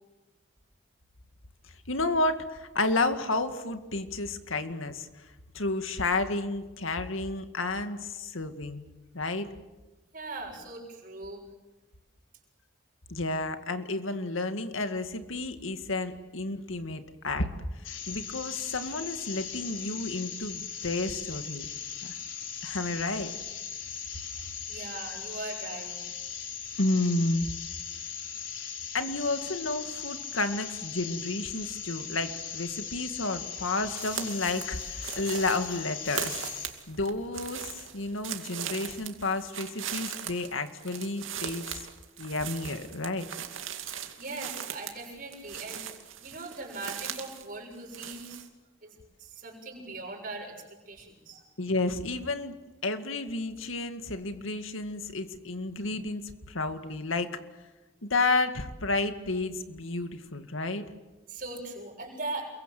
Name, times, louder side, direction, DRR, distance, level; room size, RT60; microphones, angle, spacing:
voice 1, 1.9-5.1 5.5-8.8 9.1-9.5 13.1-17.5 17.8-21.7 22.0-22.1 22.6-23.3 25.1-25.2 26.8-27.5 28.9-36.3 36.9-41.8 42.2-43.3 51.6-52.5 52.8-57.3 58.0-60.9, left 2 dB, 85° left, 8 dB, 2.1 m, -31 dB
voice 2, 10.1-11.4 24.3-26.0 44.2-45.9 46.1-48.5 48.8-50.6 50.9-51.4 61.3-62.5, right 2 dB, 45° right, 0 dB, 7.1 m, -40 dB
sound 1, 17.8-36.7, left 7 dB, 70° left, 4.2 m, -39 dB
sound 2, 34.0-47.5 47.7-48.5, right 9 dB, 80° right, 2.5 m, -39 dB
29.0 x 23.0 x 7.8 m, 1.1 s
head